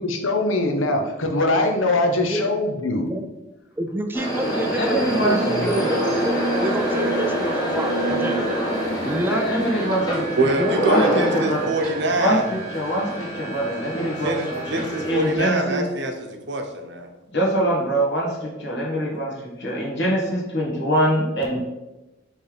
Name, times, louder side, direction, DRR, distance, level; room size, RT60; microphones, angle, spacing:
voice 1, 0.0-3.1, left 2 dB, 75° left, 4 dB, 0.9 m, -22 dB
voice 2, 2.1-2.5 3.1-3.3 3.8-6.0 6.3-6.4 6.6-8.6 9.0-9.6 10.6-10.7, right 1 dB, 10° right, 5 dB, 0.4 m, -28 dB
sound 1, 4.1-15.4, right 1 dB, 20° left, 1.4 m, -25 dB
voice 3, 4.5-6.1 9.2-10.4 10.8-11.7 12.2-14.4 14.7-15.8 17.3-21.6, right 1 dB, 55° left, -2 dB, 1.5 m, -24 dB
voice 4, 9.8-12.4 14.2-17.1, right 2 dB, 55° right, 4 dB, 0.8 m, -25 dB
5.4 x 3.4 x 5.1 m, 1.0 s
head